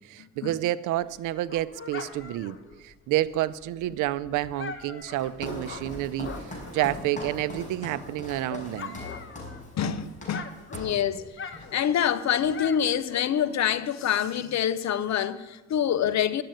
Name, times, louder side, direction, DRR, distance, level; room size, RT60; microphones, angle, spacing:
voice 1, 0.0-9.0, right 14 dB, 90° right, 0.6 m, -29 dB
Dog, 1.0-7.2 7.6-9.9 10.2-13.6, left 5 dB, 40° left, 1.3 m, -43 dB
Walk footsteps, 5.1-11.1 11.5-11.8 12.1-12.9, left 1 dB, 25° left, 5.2 m, -40 dB
voice 2, 9.7-11.3 11.7-16.4, left 9 dB, 65° left, 0.9 m, -26 dB
11.5 x 7.7 x 9.0 m
cardioid pair, 90°, 30 cm